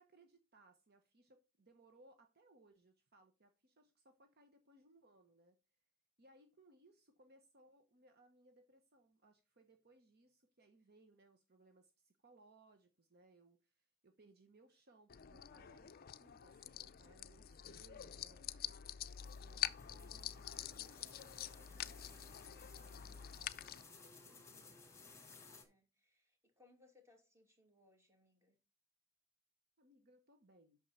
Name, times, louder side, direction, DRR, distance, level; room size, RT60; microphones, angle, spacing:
voice 1, 0.0-5.6 6.2-15.9 16.2-18.8 19.4-24.8 29.8-30.8, right 2 dB, 50° right, 6 dB, 1.0 m, -68 dB
sound 1, 15.1-23.8, left 11 dB, 45° left, 0.4 m, -46 dB
sound 2, 19.0-25.6, left 4 dB, 15° left, 2.4 m, -60 dB
voice 2, 24.3-24.8 25.6-28.6, left 2 dB, 15° right, 3 dB, 2.6 m, -70 dB
8.8 x 6.4 x 4.1 m, 0.29 s
head